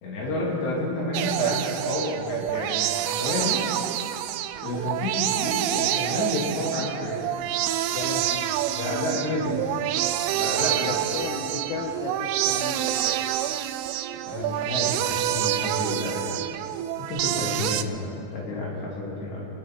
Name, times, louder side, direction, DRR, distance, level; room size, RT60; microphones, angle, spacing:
voice 1, 0.0-3.6 4.6-7.2 8.7-9.6 10.3-10.9 14.2-16.3 17.1-19.5, left 2 dB, 60° left, -5 dB, 5.0 m, -30 dB
sound 1, 1.1-17.8, right 12 dB, 90° right, 3.2 m, -27 dB
voice 2, 7.9-8.5 10.7-13.2, left 5 dB, 85° left, 0 dB, 3.6 m, -34 dB
23.5 x 10.5 x 4.6 m, 2.6 s
omnidirectional pair, 5.6 m